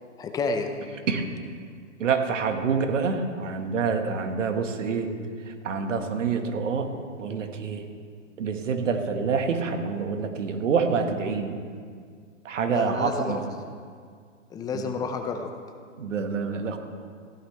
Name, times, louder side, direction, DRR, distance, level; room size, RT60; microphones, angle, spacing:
voice 1, 0.2-0.7 11.2-11.3 12.7-13.5 14.5-15.5, left 4 dB, 10° left, 6 dB, 0.5 m, -30 dB
voice 2, 2.0-5.1 5.6-6.9 7.2-7.8 8.4-11.5 12.4-13.4 16.0-16.8, right 5 dB, 70° right, 5 dB, 1.7 m, -26 dB
16.0 x 11.5 x 3.4 m, 2.1 s
hypercardioid pair, 130°, 38 cm